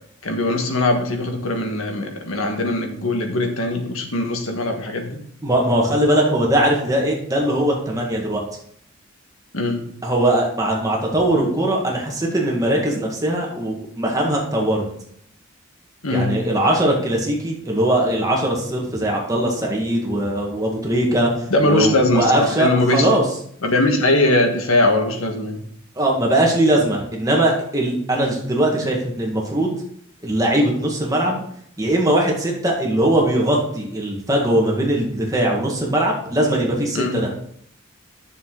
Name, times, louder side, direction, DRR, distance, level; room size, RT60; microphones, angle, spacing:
voice 1, 0.2-5.2 9.5-9.9 16.0-16.3 21.5-23.2 23.6-25.6 36.9-37.2, left 2 dB, 85° left, 4 dB, 1.6 m, -20 dB
voice 2, 5.4-8.4 10.0-14.8 16.1-21.3 21.6-23.2 26.0-29.7 30.2-31.4 31.8-37.3, right 1 dB, 15° right, -1 dB, 1.8 m, -20 dB
10.5 x 6.9 x 3.9 m, 0.67 s
head